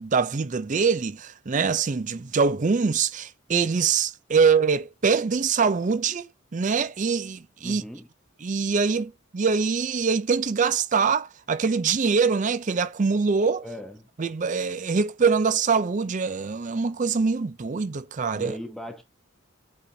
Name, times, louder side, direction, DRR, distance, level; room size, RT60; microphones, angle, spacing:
voice 1, 0.0-7.8 8.4-13.6 14.2-18.6, right 5 dB, 40° right, 0.5 m, -24 dB
voice 2, 7.6-8.1 13.6-14.1 18.3-19.0, equal, ahead, 0.7 m, -37 dB
8.5 x 4.0 x 2.7 m
head